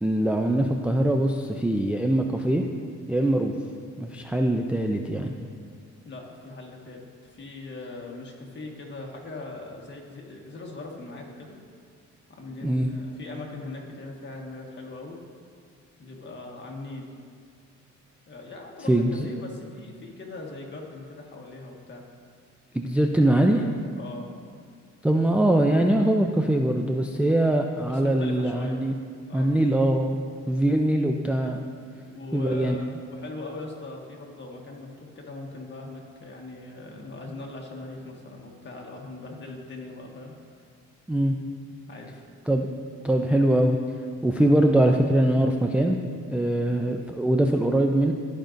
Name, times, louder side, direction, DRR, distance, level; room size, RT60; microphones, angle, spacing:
voice 1, 0.0-2.6 3.1-3.5 4.0-5.3 12.6-12.9 18.9-19.3 22.7-23.7 25.0-28.9 29.3-30.2 30.5-31.6 32.3-32.8 41.1-41.4 42.5-42.7 43.0-43.8 44.2-46.0 46.3-48.1, right 1 dB, 5° right, 2 dB, 0.4 m, -22 dB
voice 2, 6.0-11.6 12.4-15.2 16.0-17.1 18.3-22.0 24.0-24.3 27.9-28.8 29.3-29.5 32.1-40.3 41.9-42.2, left 2 dB, 35° left, -1 dB, 1.5 m, -40 dB
13.5 x 5.1 x 2.6 m, 2.1 s
cardioid pair, 90°, 30 cm